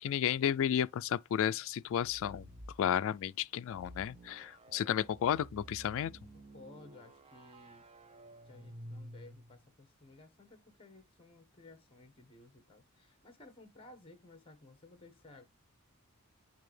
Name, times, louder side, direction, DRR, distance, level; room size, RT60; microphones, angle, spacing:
voice 1, 0.0-2.4 2.8-6.1, left 9 dB, 60° left, 0.3 m, -32 dB
sound 1, 1.9-2.8 3.7-9.7, right 1 dB, 25° right, 0.6 m, -52 dB
voice 2, 6.3-7.8 8.5-15.4, left 2 dB, 25° left, 1.3 m, -57 dB
8.8 x 3.4 x 3.2 m
head